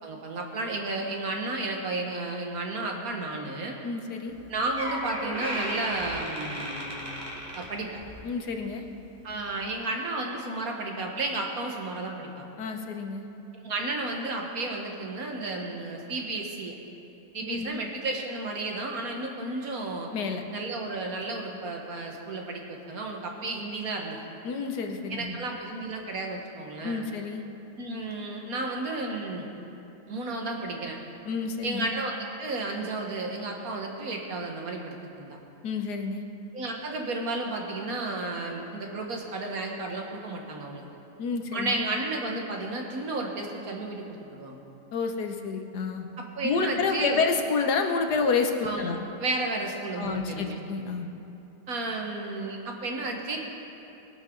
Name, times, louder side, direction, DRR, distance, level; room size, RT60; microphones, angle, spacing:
voice 1, 0.0-3.8 4.5-7.1 7.6-7.9 9.2-12.5 13.6-16.7 17.3-20.1 20.5-24.2 25.1-27.1 27.8-29.5 30.1-31.0 31.6-35.4 36.5-40.8 41.5-44.6 46.2-47.2 48.6-50.6 51.7-53.4, right 2 dB, 55° right, 1 dB, 1.9 m, -33 dB
voice 2, 3.8-4.3 8.2-8.8 12.6-13.3 17.5-17.7 20.1-20.4 24.4-25.4 26.8-27.4 31.3-31.9 35.6-36.2 41.2-41.8 44.9-46.1 46.4-49.0 50.0-51.1, left 4 dB, 70° left, 4 dB, 1.6 m, -29 dB
Door, 4.3-4.4 4.8-8.3 8.6-8.9 9.6-9.7, equal, 20° right, 2.5 m, -35 dB
21.5 x 11.5 x 3.9 m, 2.8 s
omnidirectional pair, 1.9 m